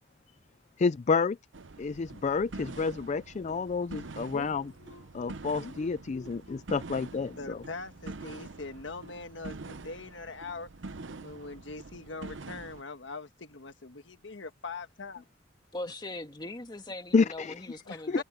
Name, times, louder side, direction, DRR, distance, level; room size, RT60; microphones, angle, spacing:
voice 1, 0.8-1.4 1.8-4.6 5.1-7.6 17.1-17.5 18.1-18.2, left 4 dB, 40° left, 0.4 m, -29 dB
sound 1, 1.5-12.8, right 3 dB, 80° right, 0.8 m, -45 dB
voice 2, 4.3-5.4 7.4-10.7 11.2-15.2 17.9-18.2, left 3 dB, 75° left, 1.5 m, -42 dB
voice 3, 15.7-18.2, left 2 dB, 25° left, 2.1 m, -40 dB
head